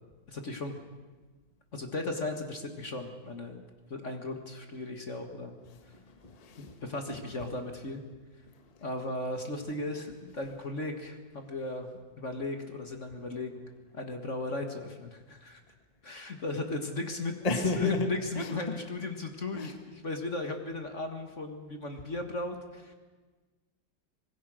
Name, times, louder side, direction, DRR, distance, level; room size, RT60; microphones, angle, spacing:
voice 1, 0.3-0.7 1.7-3.6 3.9-5.5 6.6-8.0 8.8-13.6 13.9-15.6 16.0-17.3 17.8-19.7 20.0-22.9, left 2 dB, 40° left, 5 dB, 1.9 m, -36 dB
voice 2, 5.7-6.8 7.1-7.2 8.5-8.6 17.4-18.8 19.5-19.7, left 3 dB, 20° left, 5 dB, 1.6 m, -33 dB
25.5 x 20.5 x 6.4 m, 1.3 s
omnidirectional pair, 2.1 m